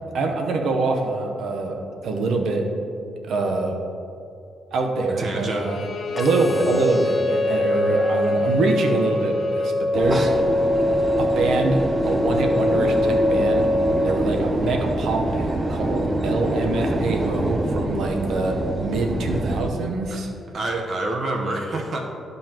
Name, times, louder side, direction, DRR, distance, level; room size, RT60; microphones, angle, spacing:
voice 1, 0.1-1.8 2.0-2.6 3.2-3.7 4.7-5.8 6.1-10.4 11.2-20.3, right 3 dB, 75° right, 3 dB, 0.9 m, -24 dB
voice 2, 5.2-5.7 20.0-20.2 20.5-22.0, right 2 dB, 50° right, 2 dB, 1.0 m, -27 dB
Bowed string instrument, 5.6-9.8, left 5 dB, 60° left, 0.6 m, -33 dB
sound 1, 6.2-14.2, left 1 dB, 20° left, 0.6 m, -23 dB
sound 2, 9.9-19.7, right 1 dB, 25° right, 0.6 m, -25 dB
11.5 x 5.5 x 2.9 m, 2.7 s
cardioid pair, 105°, 0 cm